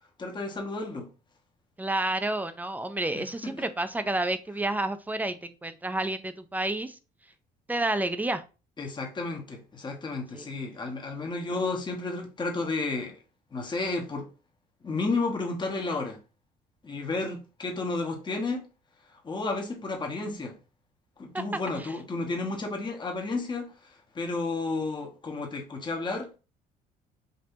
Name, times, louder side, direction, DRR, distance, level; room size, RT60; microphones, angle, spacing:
voice 1, 0.2-1.1 3.4-3.5 8.8-13.2 13.5-14.3 14.8-16.2 16.8-18.6 19.2-20.6 21.2-23.7 24.1-26.4, left 3 dB, 25° left, 1.2 m, -32 dB
voice 2, 1.8-7.0 7.7-8.4 10.3-10.4 21.3-21.4, right 2 dB, 10° right, 0.4 m, -30 dB
5.4 x 2.7 x 2.7 m
cardioid pair, 110°, 17 cm